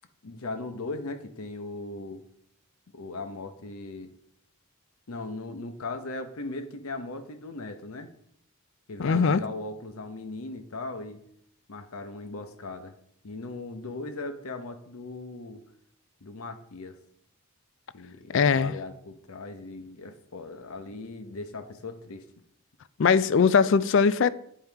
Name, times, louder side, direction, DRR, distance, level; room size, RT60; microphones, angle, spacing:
voice 1, 0.2-2.2 2.9-4.1 5.1-8.1 8.9-11.2 11.7-12.9 13.2-15.6 16.2-17.0 17.9-22.2, left 2 dB, 80° left, 0.9 m, -38 dB
voice 2, 9.0-9.4 18.3-18.7 23.0-24.3, left 5 dB, 60° left, 0.4 m, -20 dB
8.7 x 5.6 x 4.6 m
head